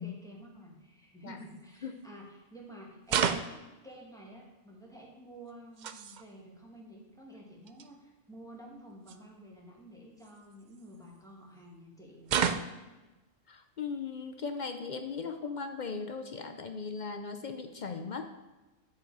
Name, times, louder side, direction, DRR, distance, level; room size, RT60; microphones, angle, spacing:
voice 1, 0.0-12.8, right 1 dB, 5° left, -2 dB, 1.6 m, -51 dB
sound 1, 1.4-1.6 3.1-3.6 5.5-6.2 7.3-7.4 7.7-7.9 9.1-9.2 10.2-11.2 12.3-12.9, right 7 dB, 65° right, 0.4 m, -32 dB
voice 2, 13.5-18.3, left 5 dB, 55° left, 7 dB, 0.5 m, -38 dB
10.5 x 5.2 x 4.7 m, 1.1 s
omnidirectional pair, 1.3 m